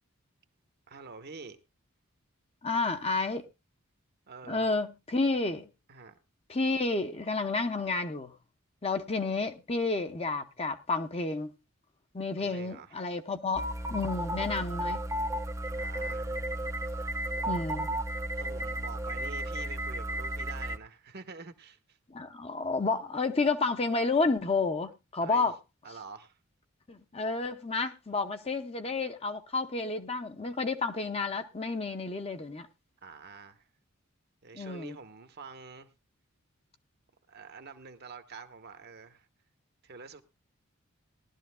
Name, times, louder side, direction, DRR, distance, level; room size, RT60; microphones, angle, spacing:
voice 1, 0.9-1.6 4.3-4.7 5.9-6.2 12.4-13.0 15.8-16.3 16.8-17.0 17.4-17.6 18.3-22.0 25.2-25.5 25.8-26.4 33.0-33.7 34.4-35.9 37.3-39.3 39.8-40.2, right 4 dB, 50° right, 1.0 m, -47 dB
voice 2, 2.6-3.5 4.5-5.7 6.5-8.4 8.8-11.5 12.1-15.1 17.5-17.9 22.1-25.5 26.9-32.7 34.5-35.0, left 3 dB, 30° left, 0.8 m, -30 dB
sound 1, 13.5-20.8, right 1 dB, 15° right, 0.6 m, -33 dB
19.0 x 12.0 x 2.2 m
head